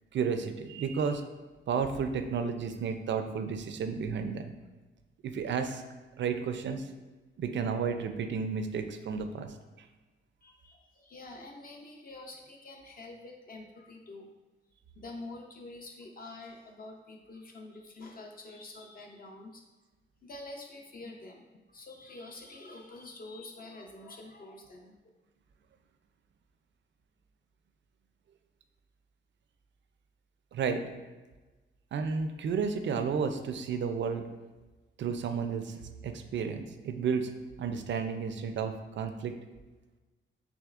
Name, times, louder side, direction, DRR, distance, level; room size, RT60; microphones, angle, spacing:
voice 1, 0.1-1.2 1.7-4.4 5.2-5.8 6.2-6.9 7.4-9.5 30.5-30.8 31.9-34.2 35.0-37.3 37.6-39.3, right 6 dB, 60° right, 8 dB, 0.4 m, -32 dB
voice 2, 10.4-14.3 15.0-19.6 20.2-24.9, left 2 dB, 45° left, 2 dB, 0.4 m, -47 dB
6.1 x 3.1 x 2.4 m, 1.2 s
wide cardioid pair, 160°, 21 cm